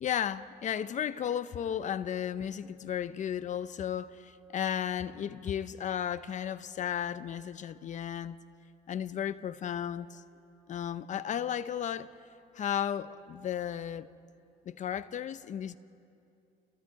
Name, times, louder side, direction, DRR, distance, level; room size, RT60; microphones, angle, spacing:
voice 1, 0.0-8.4 8.9-10.2 10.7-12.1 12.5-14.1 14.7-15.8, left 9 dB, 45° left, 0.7 m, -34 dB
30.0 x 21.5 x 4.8 m
cardioid pair, 110°, 17 cm